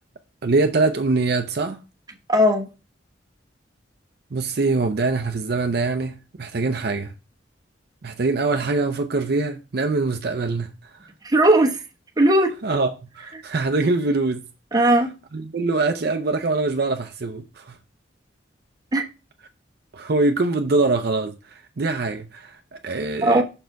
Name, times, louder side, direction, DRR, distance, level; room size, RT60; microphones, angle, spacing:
voice 1, 0.4-1.8 4.3-7.1 8.0-10.7 12.6-14.4 14.8-15.0 15.3-17.8 19.9-23.4, right 3 dB, 60° right, 0.6 m, -23 dB
voice 2, 2.3-2.7 11.2-11.8 12.2-12.5 14.7-15.1 18.9-19.0 23.2-23.4, right 1 dB, 20° right, 1.1 m, -17 dB
6.3 x 4.3 x 4.6 m
head